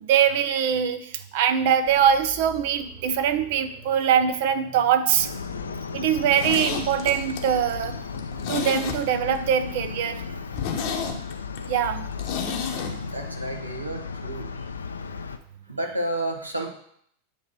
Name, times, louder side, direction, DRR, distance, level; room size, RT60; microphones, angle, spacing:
voice 1, 0.0-5.3 5.9-8.0 8.5-10.2 11.7-12.1, right 8 dB, 50° right, 11 dB, 0.5 m, -22 dB
sound 1, 1.9-6.9, equal, 5° right, 1.5 m, -48 dB
sound 2, 5.2-15.4, left 5 dB, 75° left, 0.4 m, -35 dB
Zipper (clothing), 6.1-9.4 9.7-9.8 10.1-10.2 10.5-12.9 13.2-13.3, left 7 dB, 45° left, 0.8 m, -31 dB
voice 2, 12.7-14.5 15.7-16.7, right 1 dB, 80° right, 2 dB, 0.9 m, -31 dB
8.4 x 3.0 x 4.5 m, 0.68 s
figure-of-eight pair, 90°, 0 cm